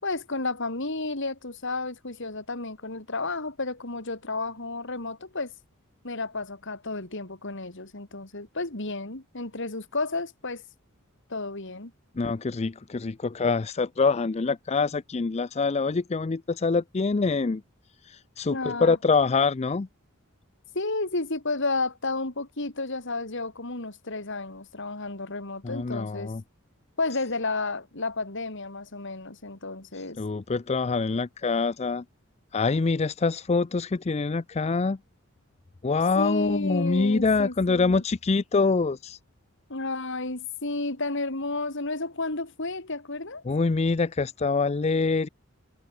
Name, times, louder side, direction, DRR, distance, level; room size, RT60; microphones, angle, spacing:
voice 1, 0.0-5.5 6.0-10.6 11.3-11.9 18.5-19.0 20.7-26.3 27.0-30.2 36.2-38.0 39.7-43.4, left 3 dB, 60° left, 3.1 m, -32 dB
voice 2, 12.1-17.6 18.0-19.9 25.6-26.4 29.9-32.0 32.5-35.0 35.8-39.2 43.4-45.3, left 4 dB, 30° left, 0.5 m, -25 dB
head